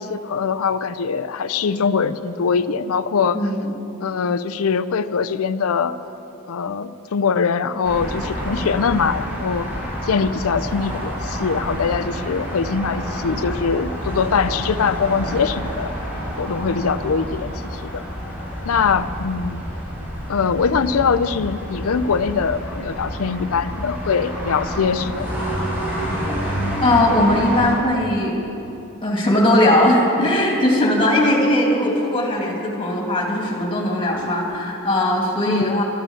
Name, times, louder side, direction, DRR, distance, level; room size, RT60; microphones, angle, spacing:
voice 1, 0.0-3.4 4.0-6.0 6.5-9.7 10.0-15.9 16.4-18.0 18.6-19.6 20.3-25.3 31.2-31.5 35.5-35.7, left 5 dB, 80° left, 13 dB, 0.5 m, -22 dB
voice 2, 3.3-3.7 26.8-28.4 29.0-35.8, left 1 dB, 25° left, -2 dB, 2.5 m, -19 dB
sound 1, 7.8-27.7, equal, 10° right, 3.4 m, -28 dB
13.0 x 12.0 x 7.2 m, 2.9 s
head